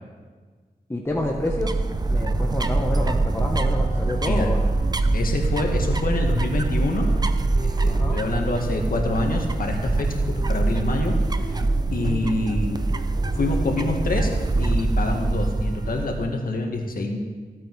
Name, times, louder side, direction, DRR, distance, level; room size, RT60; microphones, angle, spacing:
voice 1, 0.9-1.7 2.1-4.7 7.9-8.2 12.0-12.2, left 1 dB, 15° left, -1 dB, 1.1 m, -28 dB
sound 1, 1.1-16.3, right 2 dB, 25° right, 0.6 m, -24 dB
sound 2, 2.6-15.9, right 2 dB, 80° right, 3.6 m, -42 dB
voice 2, 4.2-4.5 5.1-7.1 7.8-11.6 11.9-12.8 13.3-14.3 14.6-17.2, left 2 dB, 70° left, 2 dB, 1.7 m, -26 dB
15.0 x 8.7 x 4.6 m, 1.5 s
wide cardioid pair, 80°, 16 cm